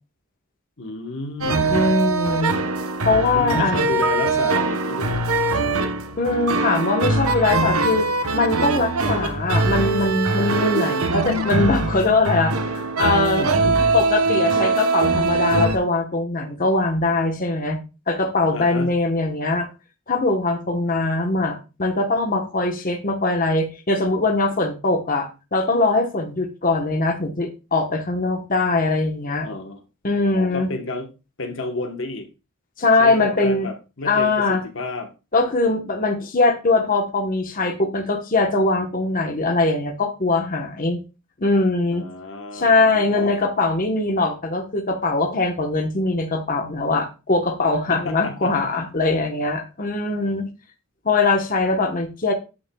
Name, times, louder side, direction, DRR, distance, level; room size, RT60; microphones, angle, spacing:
voice 1, 0.8-1.7 3.3-5.3 13.4-13.8 18.5-18.9 29.4-29.8 30.3-31.1 31.4-32.3 33.0-35.1 41.9-43.3 47.9-48.5, left 2 dB, 60° left, 1.2 m, -31 dB
sound 1, 1.4-15.8, right 3 dB, 85° right, 1.1 m, -22 dB
voice 2, 1.7-2.6 3.0-3.8 6.2-8.1 8.3-13.4 13.9-17.8 18.1-19.7 20.1-29.5 30.0-30.7 32.8-33.7 34.0-34.6 35.3-41.0 41.4-42.1 42.5-50.5 51.0-52.3, left 3 dB, 40° left, 1.2 m, -21 dB
9.7 x 8.8 x 2.3 m
head